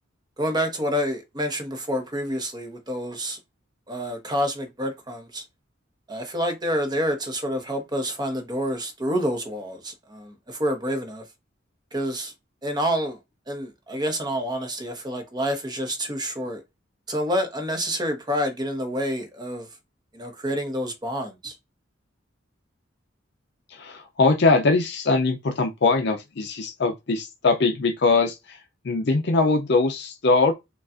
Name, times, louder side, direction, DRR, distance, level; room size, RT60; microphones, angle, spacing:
voice 1, 0.4-3.4 3.9-5.4 6.1-11.2 11.9-12.3 12.6-13.2 13.5-16.6 17.1-19.7 20.1-21.5, equal, 20° right, 0.9 m, -28 dB
voice 2, 23.7-30.5, left 3 dB, 60° left, 0.5 m, -22 dB
6.8 x 2.4 x 2.5 m
head